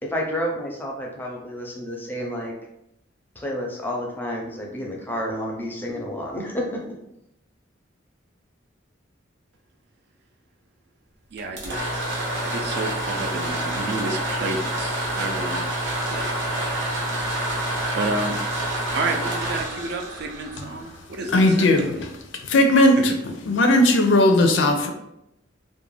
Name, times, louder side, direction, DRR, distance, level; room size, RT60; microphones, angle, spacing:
voice 1, 0.0-2.5 3.4-6.8, equal, 10° left, -1 dB, 0.5 m, -30 dB
voice 2, 11.3-15.7 16.1-16.3 17.9-18.4 18.9-22.0 23.0-23.1, right 2 dB, 60° right, 3 dB, 0.4 m, -31 dB
sound 1, 11.4-21.2, right 1 dB, 90° right, 0.8 m, -28 dB
voice 3, 21.3-21.9 22.5-23.0 23.5-24.9, left 1 dB, 75° left, 5 dB, 0.4 m, -17 dB
2.4 x 2.1 x 3.2 m, 0.82 s
head